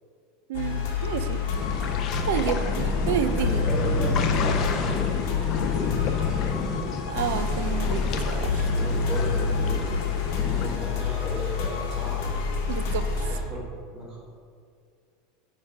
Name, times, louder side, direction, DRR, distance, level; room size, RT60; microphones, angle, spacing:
sound 1, 0.5-13.4, left 4 dB, 55° left, 1.2 m, -27 dB
voice 1, 0.5-1.4 2.2-3.7 7.1-8.7 12.7-13.3, right 9 dB, 75° right, 10 dB, 0.5 m, -30 dB
sound 2, 1.6-10.8, left 5 dB, 35° left, 0.5 m, -30 dB
voice 2, 3.2-6.0 6.3-7.4 8.6-10.0 10.4-12.4 13.3-14.2, left 1 dB, 15° right, -7 dB, 1.4 m, -36 dB
9.3 x 3.3 x 5.6 m, 2.3 s
supercardioid pair, 170°, 0 cm